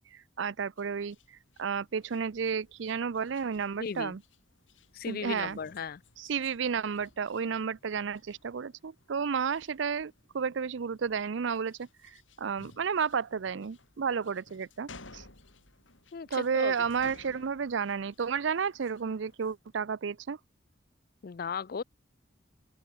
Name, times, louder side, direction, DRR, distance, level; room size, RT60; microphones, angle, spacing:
voice 1, 0.1-4.2 5.1-5.6 6.2-15.3 16.3-20.4, right 6 dB, 70° right, 0.5 m, -32 dB
sound 1, 0.8-19.6, left 3 dB, 80° left, 6.3 m, -57 dB
voice 2, 3.8-4.2 4.9-6.0 16.1-16.7 21.2-21.8, left 6 dB, 50° left, 0.4 m, -36 dB
open air
head